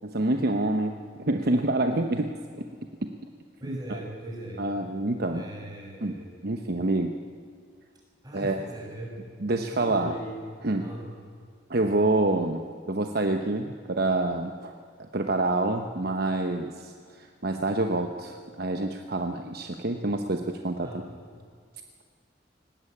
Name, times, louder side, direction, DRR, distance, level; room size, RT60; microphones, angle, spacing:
voice 1, 0.0-2.7 3.0-3.1 3.7-3.8 4.6-5.4 6.0-6.1 6.4-7.1 8.3-8.6 9.4-10.1 10.6-10.8 11.7-12.6 12.9-14.7 15.1-20.9, right 2 dB, 55° right, 5 dB, 1.0 m, -27 dB
voice 2, 3.6-4.6 5.3-6.3 8.2-9.3 9.7-10.4 10.8-11.1 20.8-21.2, right 1 dB, 20° right, -1 dB, 5.8 m, -40 dB
19.5 x 16.5 x 8.6 m, 2.1 s
head